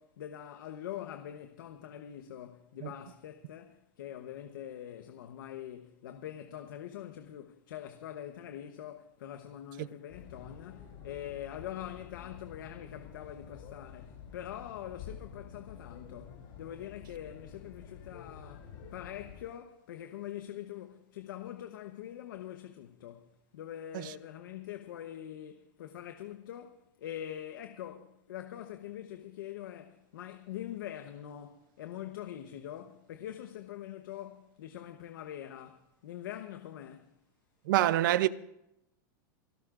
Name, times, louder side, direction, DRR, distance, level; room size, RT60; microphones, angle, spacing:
voice 1, 0.0-37.1, left 11 dB, 90° left, 1.0 m, -44 dB
sound 1, 10.1-19.4, left 7 dB, 65° left, 7.1 m, -49 dB
voice 2, 37.7-38.3, right 14 dB, 75° right, 0.7 m, -24 dB
29.5 x 13.0 x 2.5 m
supercardioid pair, 135°, 11 cm